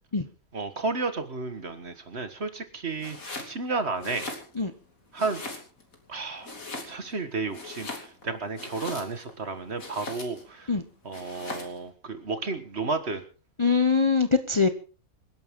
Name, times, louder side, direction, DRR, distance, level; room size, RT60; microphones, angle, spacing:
voice 1, 0.5-4.3 5.1-5.4 6.1-6.6 6.8-10.7 11.0-13.2, right 3 dB, 50° right, 9 dB, 1.9 m, -32 dB
Domestic sounds home sounds, 3.0-3.6 3.9-4.8 5.2-6.0 6.4-7.2 7.5-9.3 9.8-10.5 11.1-11.8, left 2 dB, 70° left, 3.2 m, -39 dB
voice 2, 13.6-14.7, left 4 dB, 25° left, 9 dB, 0.9 m, -22 dB
27.0 x 11.0 x 3.8 m, 0.37 s
omnidirectional pair, 1.5 m